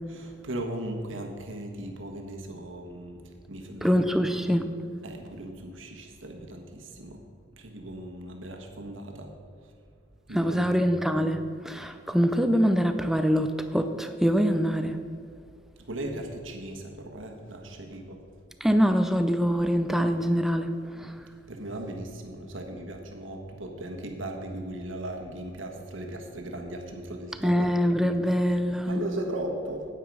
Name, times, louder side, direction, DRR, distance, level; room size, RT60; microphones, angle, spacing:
voice 1, 0.1-3.2 3.5-4.2 5.0-7.2 7.6-9.3 10.3-10.9 15.8-18.2 21.5-27.7 28.8-29.9, right 1 dB, 80° right, 2 dB, 1.4 m, -37 dB
voice 2, 3.8-4.7 10.3-15.0 18.6-21.1 27.4-29.0, equal, ahead, 8 dB, 0.5 m, -24 dB
9.3 x 9.2 x 4.8 m, 2.2 s
head